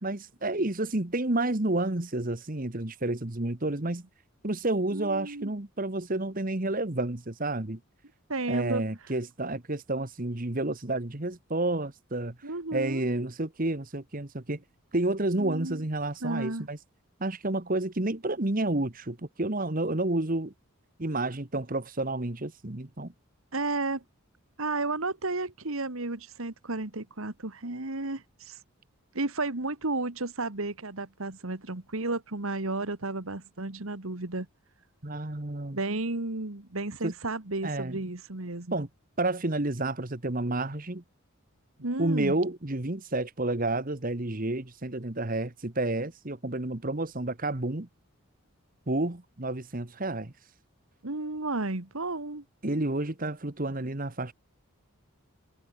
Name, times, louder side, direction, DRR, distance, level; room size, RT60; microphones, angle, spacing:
voice 1, 0.0-4.0 4.4-7.8 8.5-12.4 12.7-14.6 14.9-16.8 17.2-20.5 21.0-23.1 35.0-35.8 37.0-37.1 37.6-38.0 38.7-38.9 39.2-41.0 42.0-47.9 48.9-50.3 52.6-54.3, right 2 dB, 40° right, 1.4 m, -30 dB
voice 2, 4.9-5.5 8.3-8.9 12.4-13.1 15.4-15.8 16.2-16.7 23.5-24.0 24.6-28.6 29.1-34.5 35.7-38.8 41.8-42.4 51.0-52.4, right 2 dB, 75° right, 2.0 m, -32 dB
head